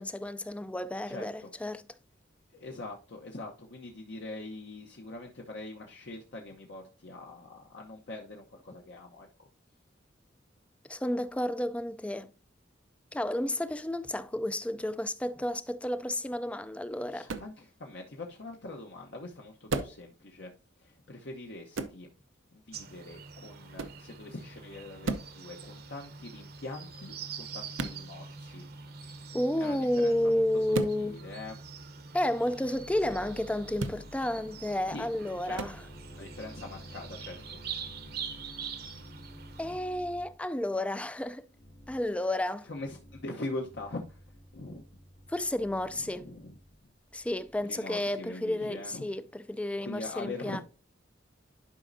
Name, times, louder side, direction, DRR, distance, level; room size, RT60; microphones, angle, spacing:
voice 1, 0.0-1.8 10.9-12.3 13.1-17.3 29.3-31.2 32.1-35.8 39.6-41.5 41.9-42.7 45.3-46.3 47.1-50.6, left 1 dB, 5° left, 0.3 m, -31 dB
voice 2, 1.1-1.5 2.5-9.5 17.1-22.1 22.5-28.7 29.6-31.6 34.9-35.1 35.4-35.7 36.2-37.6 42.6-44.2 44.5-44.8 45.9-46.6 47.7-49.1 49.8-50.6, left 2 dB, 60° left, 0.9 m, -43 dB
sound 1, 17.3-17.5 19.7-20.0 21.7-22.0 23.7-24.0 25.0-25.3 27.7-28.0 30.7-31.0 33.7-34.0 35.5-35.7, right 3 dB, 90° right, 0.7 m, -33 dB
sound 2, 22.7-39.8, right 5 dB, 55° right, 0.9 m, -45 dB
sound 3, 32.7-40.4 41.5-42.1 42.7-43.3 43.6-47.6, equal, 80° left, 2.4 m, -51 dB
11.5 x 5.0 x 2.6 m
head